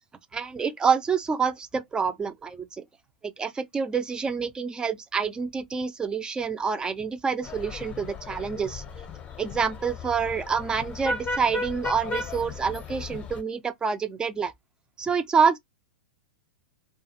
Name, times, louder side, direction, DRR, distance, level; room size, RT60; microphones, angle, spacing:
voice 1, 0.3-2.8 3.4-8.8 9.4-14.5 15.0-15.6, right 6 dB, 15° right, 0.5 m, -27 dB
sound 1, 7.4-13.4, left 3 dB, 25° left, 0.7 m, -35 dB
2.4 x 2.4 x 2.8 m
hypercardioid pair, 115°, 6 cm